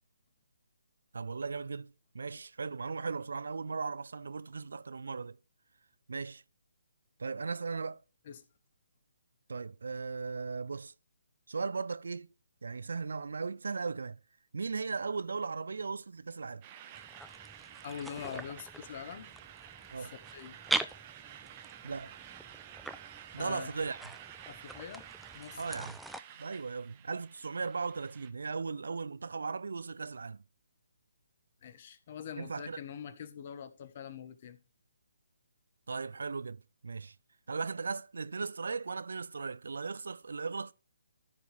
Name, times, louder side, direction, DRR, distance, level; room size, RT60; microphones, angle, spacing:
voice 1, 1.1-5.4 6.1-6.4 7.2-8.0 9.5-10.9 11.5-12.3 12.6-14.2 14.5-16.6 19.9-20.1 21.8-22.1 23.3-24.0 25.6-26.0 26.4-30.4 32.4-32.8 35.9-37.1 37.5-40.7, right 4 dB, 70° right, 0.4 m, -37 dB
sound 1, 16.6-28.3, right 10 dB, 30° right, 1.0 m, -51 dB
sound 2, 16.9-26.2, right 1 dB, ahead, 0.4 m, -42 dB
voice 2, 17.8-19.3 20.0-20.6 23.4-23.8 24.5-25.1 25.3-25.6 31.6-34.6, left 8 dB, 45° left, 1.2 m, -44 dB
14.0 x 4.9 x 3.4 m
figure-of-eight pair, 140°, 0 cm